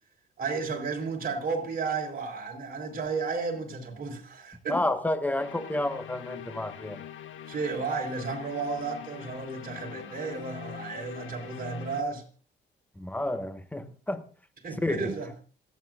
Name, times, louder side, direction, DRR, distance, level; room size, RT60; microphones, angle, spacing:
voice 1, 0.4-4.8 7.5-12.2 14.6-15.3, right 4 dB, 45° right, 4.0 m, -33 dB
voice 2, 4.7-7.0 13.0-14.3 14.8-15.1, left 1 dB, 10° left, 1.3 m, -30 dB
sound 1, 5.4-12.0, left 9 dB, 75° left, 1.5 m, -43 dB
27.0 x 9.1 x 2.5 m
cardioid pair, 90°, 20 cm